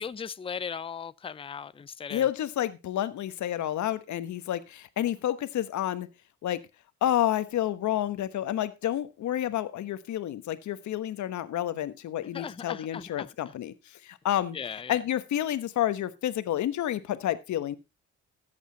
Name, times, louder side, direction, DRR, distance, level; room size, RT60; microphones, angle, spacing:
voice 1, 0.0-2.2 12.3-13.3 14.5-15.0, left 6 dB, 20° left, 0.5 m, -37 dB
voice 2, 2.1-6.1 6.4-6.6 7.0-14.6 14.9-17.8, left 12 dB, 70° left, 1.2 m, -29 dB
13.5 x 8.2 x 4.0 m
cardioid pair, 90°, 30 cm